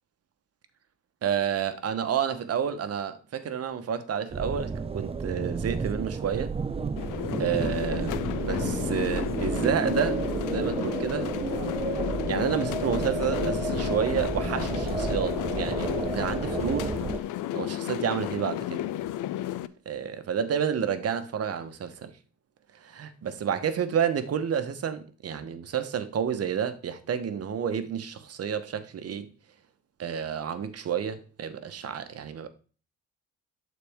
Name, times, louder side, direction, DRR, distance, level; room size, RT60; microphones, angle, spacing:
voice 1, 1.2-6.5 7.4-8.2 8.5-11.3 12.2-17.0 17.5-18.8 19.9-22.1 22.8-29.3 30.0-32.5, right 8 dB, 55° right, 1.0 m, -30 dB
sound 1, 4.3-17.2, right 4 dB, 20° right, 0.5 m, -31 dB
sound 2, 7.0-19.7, left 13 dB, 90° left, 0.5 m, -32 dB
11.5 x 4.2 x 3.5 m
cardioid pair, 90°, 30 cm